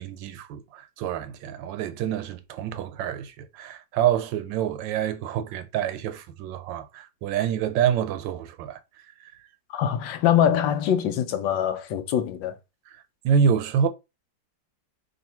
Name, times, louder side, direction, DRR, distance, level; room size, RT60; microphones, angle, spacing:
voice 1, 0.0-9.3 12.9-13.9, right 8 dB, 80° right, 1.3 m, -27 dB
voice 2, 9.7-12.6, left 9 dB, 80° left, 1.3 m, -23 dB
3.8 x 2.6 x 4.2 m
omnidirectional pair, 2.0 m